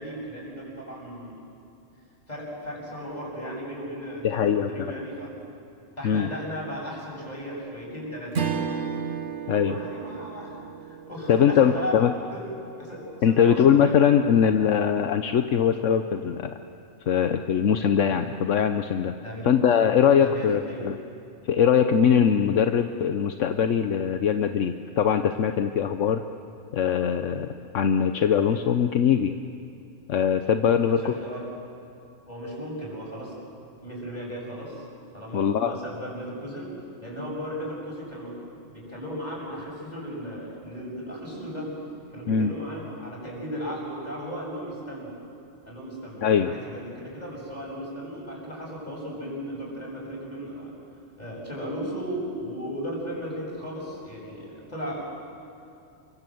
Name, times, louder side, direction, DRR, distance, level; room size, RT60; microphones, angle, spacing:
voice 1, 0.0-1.4 2.3-5.4 6.0-8.5 9.4-12.5 12.8-14.0 19.2-19.5 20.2-20.8 30.6-31.4 32.3-33.3 33.8-34.8 35.1-36.7 37.0-38.4 38.7-41.7 42.1-45.1 45.7-50.7 51.2-55.0, equal, 35° left, -3 dB, 7.8 m, -36 dB
voice 2, 4.2-4.9 6.0-6.3 9.5-9.8 11.3-12.1 13.2-16.6 17.1-19.2 19.4-21.0 21.5-26.2 26.7-29.4 30.1-31.1 35.3-35.8 42.3-42.5 46.2-46.5, left 8 dB, 75° left, 8 dB, 1.2 m, -22 dB
Strum, 8.3-12.9, right 6 dB, 60° right, 1.6 m, -33 dB
29.5 x 24.0 x 7.8 m, 2.7 s
omnidirectional pair, 1.3 m